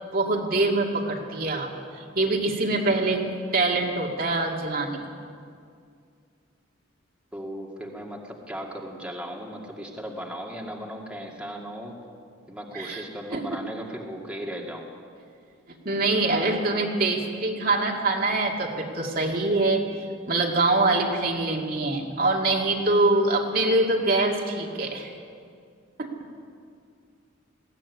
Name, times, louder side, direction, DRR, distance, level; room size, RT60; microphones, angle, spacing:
voice 1, 0.1-3.3 3.5-5.0 12.7-13.0 13.3-13.4 15.9-19.9 20.3-25.1 26.0-26.1, right 2 dB, 45° right, 0 dB, 2.2 m, -24 dB
voice 2, 7.3-12.0 12.5-14.9, equal, 5° right, -1 dB, 2.2 m, -37 dB
20.5 x 16.5 x 9.6 m, 2.3 s
head